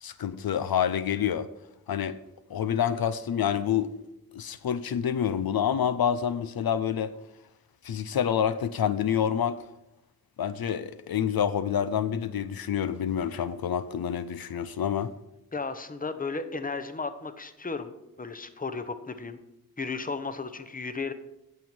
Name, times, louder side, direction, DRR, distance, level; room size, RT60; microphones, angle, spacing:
voice 1, 0.0-1.5 1.9-2.2 2.5-3.9 4.3-7.1 7.8-9.7 10.4-15.1, left 9 dB, 80° left, 0.5 m, -27 dB
voice 2, 15.5-17.9 18.2-19.4 19.8-21.1, left 4 dB, 25° left, 0.8 m, -34 dB
8.9 x 7.2 x 6.0 m
wide cardioid pair, 95°, 36 cm